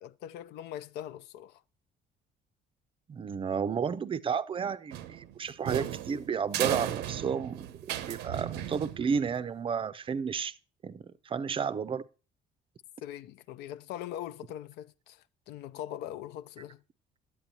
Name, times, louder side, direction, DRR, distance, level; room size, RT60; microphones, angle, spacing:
voice 1, 0.0-1.6 13.0-16.8, left 11 dB, 85° left, 0.4 m, -41 dB
voice 2, 3.1-10.6 10.8-12.1, right 6 dB, 30° right, 0.4 m, -32 dB
sound 1, 4.9-9.4, right 11 dB, 90° right, 0.6 m, -35 dB
9.0 x 8.4 x 2.8 m
cardioid pair, 110°, 17 cm